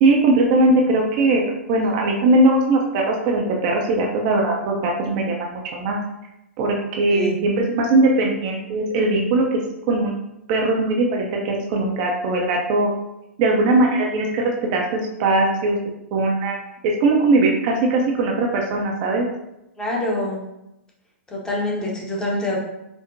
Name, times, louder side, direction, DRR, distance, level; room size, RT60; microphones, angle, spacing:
voice 1, 0.0-6.0 6.6-9.6 9.9-10.1 10.5-12.9 13.4-15.8 16.1-16.6 16.8-19.3, right 2 dB, 35° right, 0 dB, 0.5 m, -20 dB
voice 2, 19.8-20.4 21.3-22.6, left 1 dB, 10° left, -3 dB, 0.7 m, -25 dB
4.4 x 2.1 x 2.6 m, 0.88 s
figure-of-eight pair, 110°, 7 cm